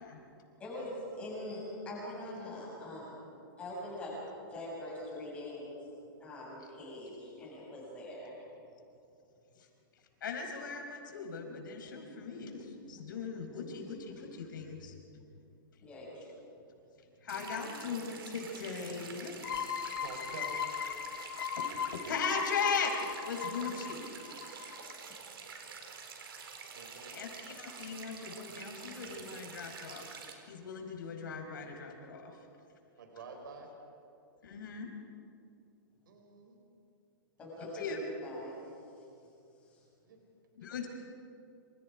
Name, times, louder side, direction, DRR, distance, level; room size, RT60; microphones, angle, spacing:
voice 1, 0.0-0.6 20.0-20.7 23.6-23.9 26.7-27.2 33.0-33.7 36.1-36.6 40.0-40.2 40.6-40.7, right 3 dB, 60° right, 3 dB, 4.2 m, -49 dB
voice 2, 0.6-3.2 3.6-4.1 4.5-5.8 6.2-8.3 15.8-16.3 37.4-37.9 38.2-38.6 39.6-39.8, left 1 dB, 10° left, -5 dB, 7.3 m, -43 dB
voice 3, 10.2-15.2 17.2-19.4 21.5-24.0 27.1-30.1 30.5-32.5 34.4-34.9 37.7-38.0 40.5-40.9, left 5 dB, 60° left, 3 dB, 5.0 m, -38 dB
sound 1, 17.3-30.3, right 5 dB, 85° right, 4.4 m, -47 dB
sound 2, 19.4-24.9, left 8 dB, 80° left, 1.9 m, -38 dB
28.0 x 27.0 x 5.0 m, 2.7 s
hypercardioid pair, 175°, 12 cm